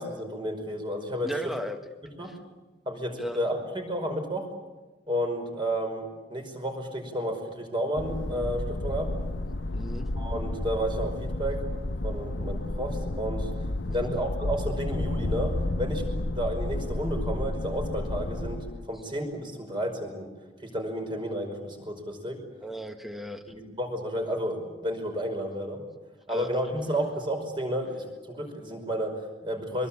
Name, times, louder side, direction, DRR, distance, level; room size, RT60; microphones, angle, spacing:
voice 1, 0.0-1.3 2.2-2.3 2.9-4.5 5.1-6.0 6.3-9.1 10.2-11.7 12.0-13.5 13.9-20.3 20.6-22.4 23.5-25.8 26.3-29.9, equal, 25° right, 4 dB, 5.3 m, -31 dB
voice 2, 1.2-1.9 2.2-2.4 3.2-3.4 9.7-10.1 13.8-14.1 22.6-23.4 26.3-26.5, equal, ahead, 6 dB, 1.6 m, -36 dB
sound 1, 8.0-18.9, left 1 dB, 85° left, 1.1 m, -31 dB
24.5 x 23.0 x 8.7 m, 1.2 s
head